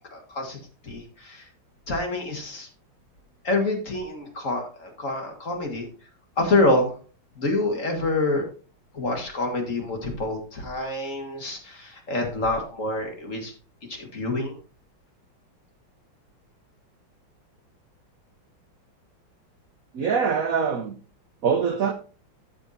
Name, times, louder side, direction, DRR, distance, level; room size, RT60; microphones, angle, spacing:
voice 1, 0.1-0.6 0.8-1.4 1.9-2.7 3.4-5.9 6.4-6.9 7.4-8.4 8.9-13.5 13.9-14.6, left 2 dB, 40° left, 3 dB, 1.9 m, -26 dB
voice 2, 19.9-20.9 21.4-21.9, right 6 dB, 65° right, 7 dB, 0.9 m, -23 dB
12.5 x 7.0 x 2.7 m, 0.38 s
omnidirectional pair, 2.3 m